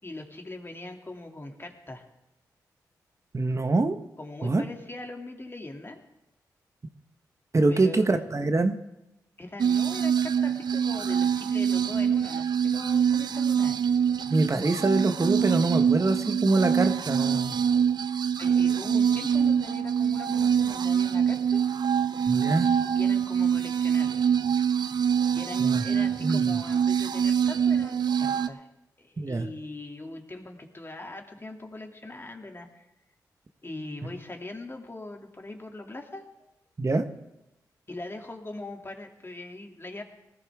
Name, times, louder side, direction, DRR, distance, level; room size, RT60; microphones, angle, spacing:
voice 1, 0.0-2.0 4.2-6.0 7.7-8.1 9.4-13.8 18.4-21.6 22.9-24.3 25.3-28.7 29.0-32.9 33.6-36.3 37.9-40.0, left 2 dB, 30° left, 2 dB, 2.7 m, -41 dB
voice 2, 3.3-4.0 4.4-4.6 7.5-8.8 14.3-17.5 22.3-22.7 25.6-25.8 26.2-26.6 29.2-29.5 34.0-34.1 36.8-37.0, right 3 dB, 40° right, 8 dB, 1.2 m, -24 dB
sound 1, 9.6-28.5, right 7 dB, 65° right, 0.6 m, -25 dB
19.5 x 14.0 x 3.7 m, 0.89 s
supercardioid pair, 40°, 8 cm